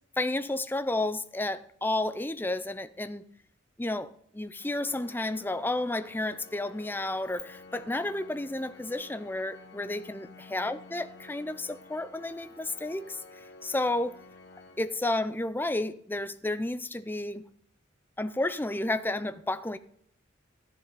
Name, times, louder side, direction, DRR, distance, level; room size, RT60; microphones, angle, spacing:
voice 1, 0.2-3.2 3.8-14.2 14.8-17.4 18.2-19.8, left 2 dB, 10° left, 0.5 m, -31 dB
Organ, 4.6-15.5, left 3 dB, 55° left, 1.1 m, -52 dB
13.5 x 10.5 x 4.0 m
head